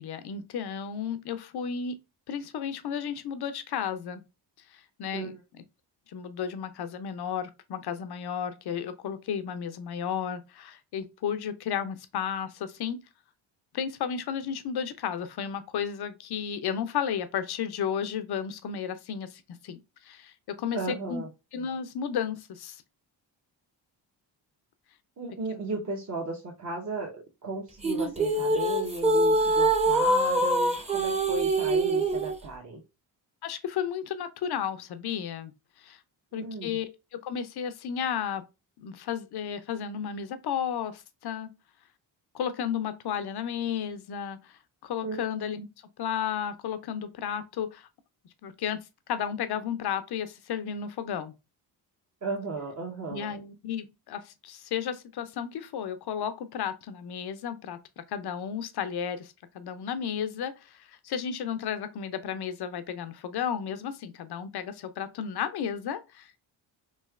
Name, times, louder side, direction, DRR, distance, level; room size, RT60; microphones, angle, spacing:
voice 1, 0.0-2.0 2.3-4.2 4.7-5.3 6.1-13.0 13.7-21.2 21.5-22.8 25.5-25.6 33.4-35.5 35.8-36.0 36.3-38.4 38.8-41.5 42.3-45.7 46.0-47.9 48.4-51.3 53.1-66.5, left 8 dB, 55° left, 0.6 m, -33 dB
voice 2, 20.7-21.3 25.2-32.8 36.3-36.8 45.0-45.2 52.2-53.3, right 3 dB, 35° right, 0.9 m, -35 dB
sound 1, 27.8-32.4, right 1 dB, 15° right, 0.8 m, -24 dB
3.1 x 2.7 x 2.3 m
supercardioid pair, 60°, 48 cm